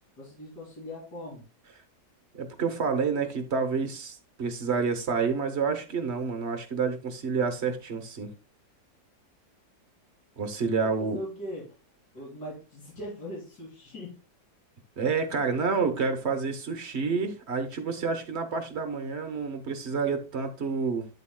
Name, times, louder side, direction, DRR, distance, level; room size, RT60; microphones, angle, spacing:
voice 1, 0.2-1.4 10.8-11.8 12.1-14.2, equal, 70° left, 3.4 m, -40 dB
voice 2, 2.3-8.3 10.4-11.2 15.0-21.1, right 5 dB, 45° right, 1.1 m, -29 dB
8.5 x 8.0 x 2.2 m
omnidirectional pair, 1.8 m